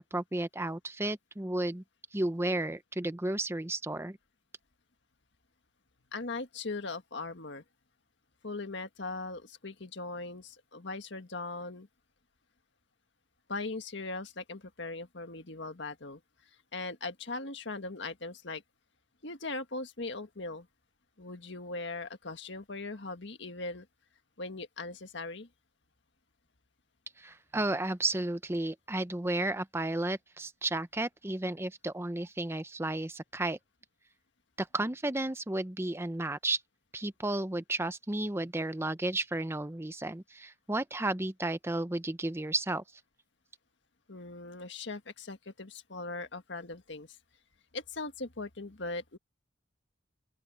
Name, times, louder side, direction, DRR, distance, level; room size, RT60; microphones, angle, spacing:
voice 1, 0.0-1.8 2.1-4.2 27.2-33.6 34.6-36.6 36.9-42.8, right 2 dB, 15° right, 0.7 m, -33 dB
voice 2, 6.1-7.6 8.4-11.9 13.5-16.2 16.7-18.6 19.2-20.7 21.2-23.9 24.4-25.5 44.1-47.1 47.7-49.2, left 3 dB, 65° left, 1.8 m, -39 dB
open air
head